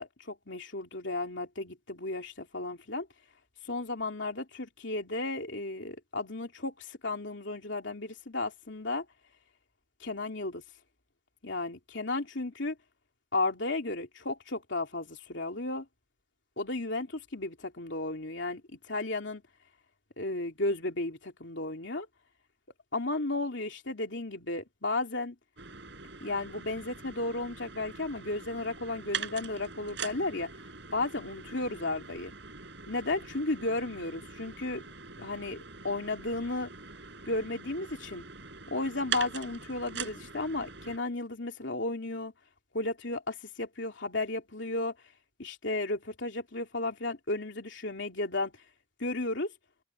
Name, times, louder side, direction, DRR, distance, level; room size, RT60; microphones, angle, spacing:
voice 1, 0.0-3.1 3.6-9.0 10.0-10.6 11.4-12.8 13.3-15.8 16.6-18.6 18.9-19.4 20.2-22.1 22.9-25.3 26.2-30.5 30.9-32.3 32.9-34.8 35.2-36.7 37.2-38.2 38.7-42.3 42.7-44.9 45.4-48.5 49.0-49.5, left 2 dB, 65° left, 3.2 m, -34 dB
sound 1, 25.6-41.0, right 6 dB, 60° right, 5.9 m, -43 dB
head